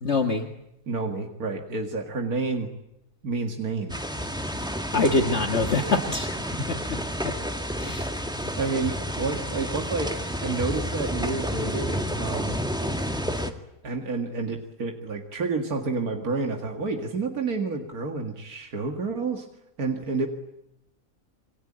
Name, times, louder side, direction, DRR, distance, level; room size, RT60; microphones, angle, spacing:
voice 1, 0.0-0.5 4.9-6.4 6.7-6.8 7.2-7.3 7.8-8.1, left 3 dB, 50° left, 4 dB, 2.0 m, -24 dB
voice 2, 0.9-2.7 3.2-4.0 6.6-6.7 8.3-10.2 10.4-12.6 13.8-19.5 19.8-20.3, right 4 dB, 85° right, 3 dB, 2.5 m, -29 dB
sound 1, 3.9-13.5, equal, 5° right, 1.9 m, -30 dB
28.0 x 23.5 x 8.8 m, 0.85 s
omnidirectional pair, 1.5 m